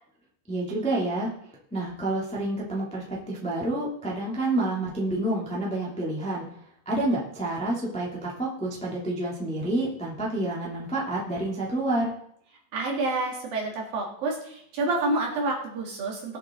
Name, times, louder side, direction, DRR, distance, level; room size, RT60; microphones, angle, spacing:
voice 1, 0.5-1.3 1.7-6.5 6.8-12.1, right 2 dB, ahead, -4 dB, 1.5 m, -28 dB
voice 2, 12.7-16.4, right 2 dB, 55° right, 0 dB, 3.3 m, -28 dB
20.0 x 7.6 x 3.9 m, 0.69 s
omnidirectional pair, 5.6 m